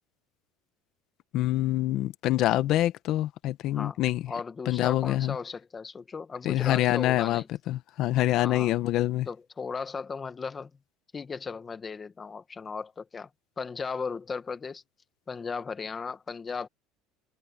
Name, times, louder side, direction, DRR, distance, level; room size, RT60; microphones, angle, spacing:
voice 1, 1.3-4.2 4.7-5.4 6.4-9.3, left 14 dB, 45° left, 1.0 m, -26 dB
voice 2, 4.3-7.5 8.4-8.7 9.3-10.7 11.1-13.3 13.6-14.8 15.3-16.7, left 5 dB, 15° left, 1.4 m, -36 dB
cardioid pair, 170°, 0 cm